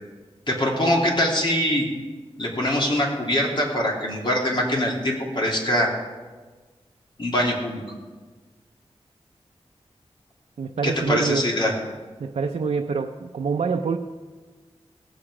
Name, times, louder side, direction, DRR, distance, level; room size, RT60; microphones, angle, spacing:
voice 1, 0.5-1.9 2.4-5.9 7.2-7.8 10.8-11.7, left 1 dB, 45° left, -2 dB, 2.9 m, -23 dB
voice 2, 10.6-11.4 12.2-14.0, right 5 dB, 90° right, 3 dB, 0.6 m, -26 dB
18.0 x 7.9 x 4.9 m, 1.4 s
wide cardioid pair, 80°, 11 cm